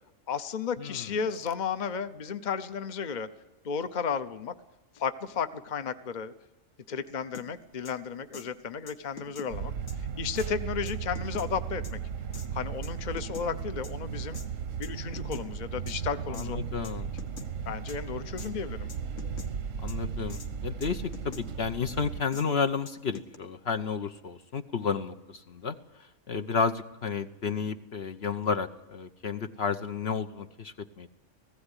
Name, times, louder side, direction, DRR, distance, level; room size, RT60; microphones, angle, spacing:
voice 1, 0.3-3.3 3.6-4.5 5.0-6.3 6.9-9.7 10.2-12.0 12.5-14.4 14.8-16.6 17.7-18.9, left 6 dB, 40° left, 11 dB, 1.0 m, -33 dB
voice 2, 0.8-1.2 16.3-17.1 19.8-25.7 26.3-31.1, left 5 dB, 60° left, 7 dB, 1.1 m, -32 dB
sound 1, 7.3-7.5 7.8-7.9 8.3-8.5 8.9-9.5 9.9-10.0 10.4-10.5 10.9-11.5 11.8-11.9 12.3-12.5 12.8-13.5 13.8-13.9 14.3-14.5 14.8-15.5 15.9-16.0 16.3-16.5 16.8-16.9 17.2-17.5 17.9-18.0 18.4-18.5 18.9-19.5 19.9-20.0 20.3-20.5 20.8-21.4 21.9-22.0 22.3-22.4 22.9-23.4, left 5 dB, 75° left, 2.0 m, -44 dB
sound 2, 9.5-22.2, right 7 dB, 85° right, 1.4 m, -36 dB
19.0 x 15.5 x 9.9 m, 0.97 s
omnidirectional pair, 1.3 m